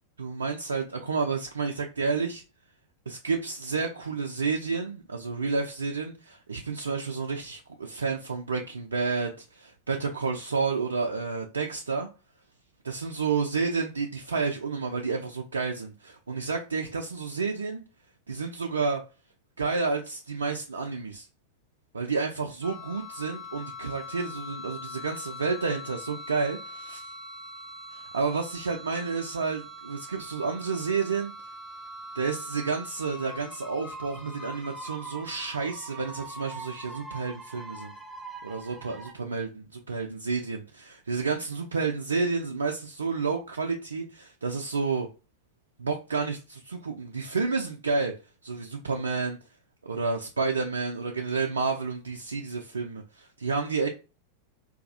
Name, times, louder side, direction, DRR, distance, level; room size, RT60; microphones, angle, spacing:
voice 1, 0.2-2.4 3.1-12.1 12.8-17.8 18.3-19.0 19.6-21.3 21.9-27.1 27.9-31.3 32.1-37.9 38.4-45.1 45.8-48.1 48.4-49.4 49.8-53.9, right 4 dB, 75° right, 0.3 m, -30 dB
sound 1, 22.6-39.1, equal, 10° right, 0.6 m, -42 dB
4.0 x 2.3 x 2.6 m
figure-of-eight pair, 90°, 0 cm